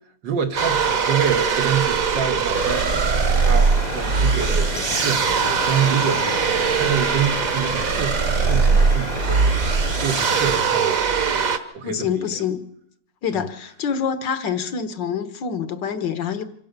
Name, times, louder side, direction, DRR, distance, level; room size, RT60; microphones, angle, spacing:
voice 1, 0.2-2.9 3.4-11.4 11.7-12.4 13.3-13.5, right 7 dB, 80° right, 2.2 m, -27 dB
sound 1, 0.6-11.6, right 5 dB, 50° right, 1.6 m, -21 dB
sound 2, 2.5-10.6, left 4 dB, 30° left, 0.9 m, -31 dB
voice 2, 11.8-12.7 13.2-16.4, left 7 dB, 80° left, 2.0 m, -26 dB
25.5 x 15.5 x 6.8 m
omnidirectional pair, 1.9 m